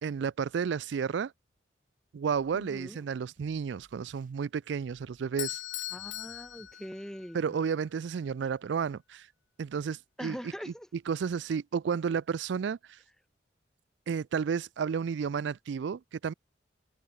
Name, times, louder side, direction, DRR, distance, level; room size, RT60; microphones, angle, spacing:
voice 1, 0.0-1.3 2.1-5.6 7.3-9.3 9.6-10.4 11.1-13.0 14.1-16.3, right 6 dB, 75° right, 0.4 m, -32 dB
sound 1, 2.2-3.0 3.3-4.3 4.8-5.6 5.9-6.9, right 1 dB, 45° right, 6.2 m, -64 dB
voice 2, 2.5-3.0 5.9-7.6 10.2-10.9, equal, 5° left, 3.4 m, -42 dB
Bell / Doorbell, 5.4-7.5, left 14 dB, 90° left, 1.7 m, -39 dB
head